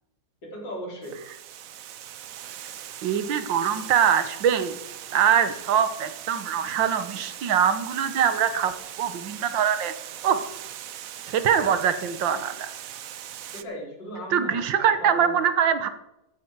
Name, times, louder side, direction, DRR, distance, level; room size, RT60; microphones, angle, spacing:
voice 1, 0.4-1.2 13.5-15.4, equal, 70° left, -1 dB, 4.1 m, -37 dB
Water, 1.0-13.6, right 11 dB, 65° right, 0.9 m, -40 dB
voice 2, 3.0-4.8 5.1-8.7 9.0-9.9 10.2-10.4 11.3-12.7 14.3-15.9, right 8 dB, 80° right, 11 dB, 1.8 m, -23 dB
14.5 x 9.8 x 4.7 m, 0.88 s
omnidirectional pair, 2.0 m